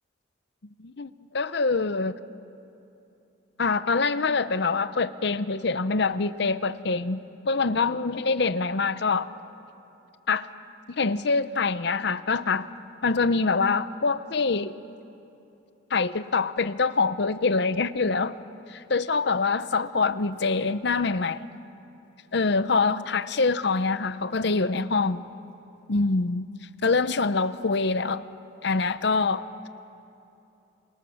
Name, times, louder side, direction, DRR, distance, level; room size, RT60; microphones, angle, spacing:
voice 1, 0.8-2.1 3.6-9.3 10.3-10.5 11.0-12.7 13.0-14.7 15.9-18.3 18.7-21.5 22.3-25.2 25.9-26.5 26.8-28.2 28.6-29.7, left 4 dB, 60° left, 0.7 m, -25 dB
28.5 x 26.5 x 7.1 m
head